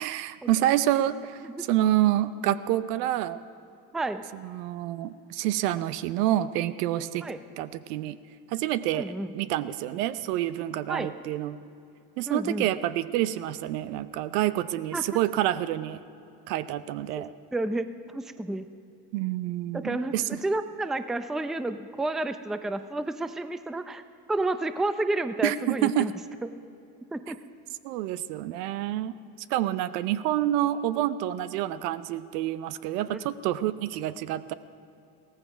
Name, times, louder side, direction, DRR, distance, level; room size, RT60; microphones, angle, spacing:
voice 1, 0.0-3.4 4.3-7.3 7.6-8.2 8.5-11.6 12.2-16.0 16.5-17.3 19.1-20.2 25.4-26.1 27.8-29.1 29.5-34.5, right 13 dB, 80° right, 14 dB, 0.7 m, -28 dB
voice 2, 3.9-4.2 7.2-7.4 8.9-9.3 10.9-11.1 12.3-12.7 14.9-15.0 17.5-18.7 19.7-24.0 24.3-26.1 27.1-27.4 33.1-33.2, right 2 dB, ahead, 11 dB, 0.4 m, -30 dB
16.0 x 14.5 x 5.1 m, 2.7 s
hypercardioid pair, 80°, 47 cm